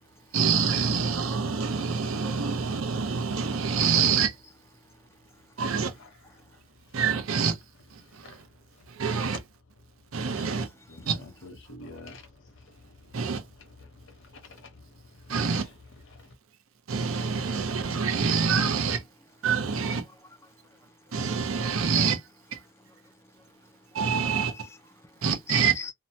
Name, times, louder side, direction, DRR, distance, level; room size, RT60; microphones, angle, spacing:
voice 1, 0.3-4.3 5.6-5.9 6.9-7.6 7.9-8.4 8.9-9.4 10.1-10.7 11.1-11.2 13.1-13.4 15.3-15.7 16.9-19.0 19.4-20.1 21.1-22.2 22.5-22.6 23.9-24.7 25.2-25.8, right 6 dB, 70° right, 0.6 m, -26 dB
voice 2, 6.5-7.0 8.0-8.8 10.9-15.7 16.1-16.3, left 2 dB, 60° left, 0.9 m, -49 dB
voice 3, 20.6-21.1 22.9-23.5 25.0-25.9, left 5 dB, 10° left, 0.4 m, -44 dB
2.7 x 2.2 x 2.7 m
head